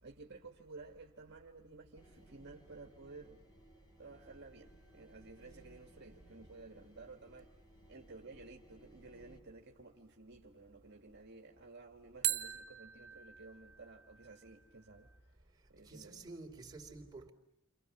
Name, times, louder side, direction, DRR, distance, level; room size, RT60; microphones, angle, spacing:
voice 1, 0.0-3.4 4.0-7.5 7.9-15.1 15.7-16.2, right 3 dB, 50° right, 1.7 m, -54 dB
sound 1, 2.0-9.4, right 1 dB, 20° left, 2.8 m, -62 dB
sound 2, 4.2-5.2 12.2-15.2, right 13 dB, 75° right, 1.3 m, -42 dB
voice 2, 15.8-17.3, right 3 dB, 20° right, 3.6 m, -50 dB
30.0 x 26.5 x 7.3 m
head